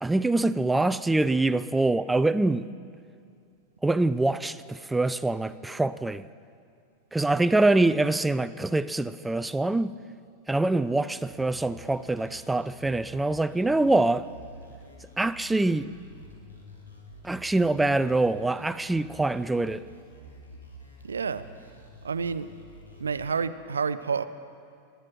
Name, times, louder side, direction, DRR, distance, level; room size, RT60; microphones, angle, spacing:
voice 1, 0.0-2.6 3.8-6.2 7.1-10.0 10.5-14.3 15.2-15.9 17.2-19.8, right 2 dB, 5° right, 0.3 m, -24 dB
sound 1, 11.2-23.2, right 1 dB, 80° left, 2.3 m, -49 dB
voice 2, 21.0-21.4 22.0-22.5 23.0-24.2, right 5 dB, 70° right, 0.4 m, -29 dB
19.0 x 10.5 x 4.5 m
figure-of-eight pair, 90°, 0 cm